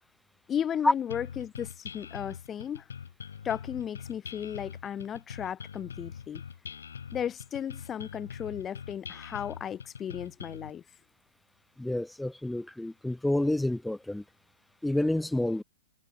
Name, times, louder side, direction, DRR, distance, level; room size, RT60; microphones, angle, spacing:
voice 1, 0.5-2.8 3.4-6.4 7.1-10.8, left 9 dB, 20° left, 2.7 m, -35 dB
sound 1, 1.1-10.7, left 7 dB, 85° left, 3.9 m, -43 dB
voice 2, 11.8-14.2 14.8-15.6, left 1 dB, 5° left, 0.6 m, -28 dB
hypercardioid pair, 125°, 0 cm